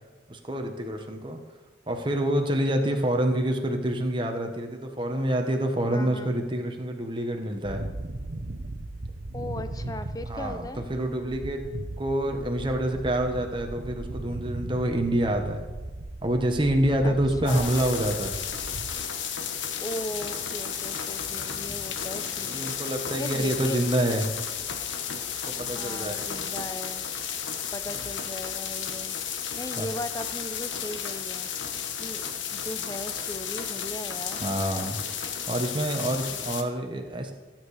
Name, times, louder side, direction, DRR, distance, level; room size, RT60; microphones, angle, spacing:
voice 1, 0.3-1.4 1.9-7.8 10.2-11.7 12.0-15.6 16.2-18.4 21.7-21.8 22.4-24.3 25.4-26.3 29.8-29.9 34.4-35.0 35.5-37.3, right 1 dB, 25° right, 4 dB, 1.2 m, -27 dB
voice 2, 5.9-6.4 9.3-10.8 17.0-17.2 17.4-17.8 19.8-22.7 23.2-24.3 25.7-27.0 27.7-29.2 29.6-31.5 32.0-32.2 32.5-34.4, left 1 dB, 20° left, 10 dB, 0.7 m, -37 dB
sound 1, 7.7-18.9, right 2 dB, 65° right, 1.0 m, -37 dB
sound 2, 17.5-36.6, left 7 dB, 75° left, 1.1 m, -33 dB
15.5 x 8.9 x 4.9 m, 1.3 s
head